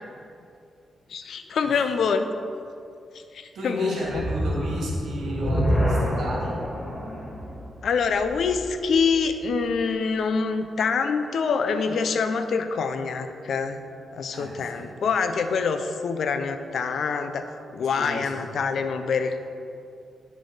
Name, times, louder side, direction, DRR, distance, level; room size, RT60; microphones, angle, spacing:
voice 1, 1.1-2.3 3.1-4.2 7.8-13.8 14.1-19.4, left 5 dB, 65° left, 8 dB, 0.6 m, -25 dB
voice 2, 3.5-6.6 14.3-14.9 17.9-18.4, right 1 dB, 80° right, -3 dB, 2.4 m, -33 dB
sound 1, 4.0-9.3, equal, 15° left, 2.1 m, -27 dB
9.0 x 6.5 x 4.8 m, 2.5 s
wide cardioid pair, 140°, 0 cm